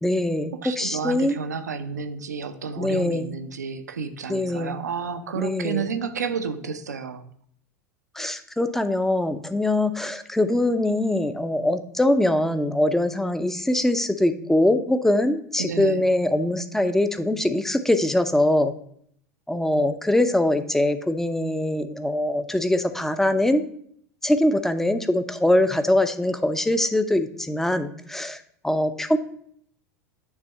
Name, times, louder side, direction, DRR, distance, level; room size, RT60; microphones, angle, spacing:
voice 1, 0.0-1.4 2.8-3.3 4.3-4.8 5.4-5.9 8.1-18.7 19.5-23.6 24.2-29.2, left 1 dB, 5° left, 10 dB, 0.6 m, -23 dB
voice 2, 0.5-7.2 15.6-16.0, right 5 dB, 75° right, 9 dB, 0.7 m, -31 dB
9.6 x 3.4 x 5.5 m, 0.65 s
figure-of-eight pair, 80°, 9 cm